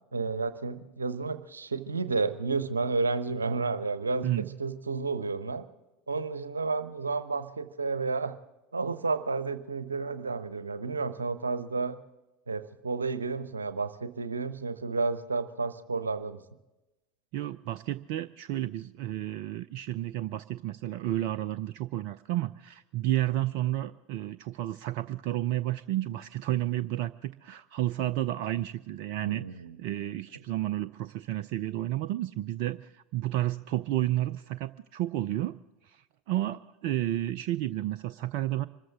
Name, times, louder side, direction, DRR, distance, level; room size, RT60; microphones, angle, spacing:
voice 1, 0.1-5.7 6.1-8.3 8.7-12.0 12.5-16.4 29.3-29.8, right 4 dB, 80° right, 12 dB, 0.9 m, -31 dB
voice 2, 17.3-35.6 35.9-38.7, right 14 dB, 55° right, 12 dB, 0.5 m, -31 dB
25.0 x 14.0 x 3.6 m, 1.0 s
figure-of-eight pair, 80°, 0 cm